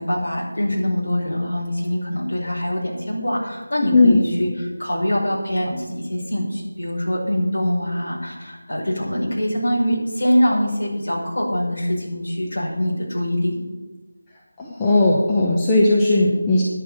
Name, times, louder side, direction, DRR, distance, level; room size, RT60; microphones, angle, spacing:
voice 1, 0.0-13.6, equal, 50° left, -4 dB, 5.2 m, -23 dB
voice 2, 14.6-16.6, left 2 dB, 10° left, -4 dB, 1.0 m, -17 dB
9.9 x 7.2 x 8.9 m, 1.2 s
figure-of-eight pair, 165°, 0 cm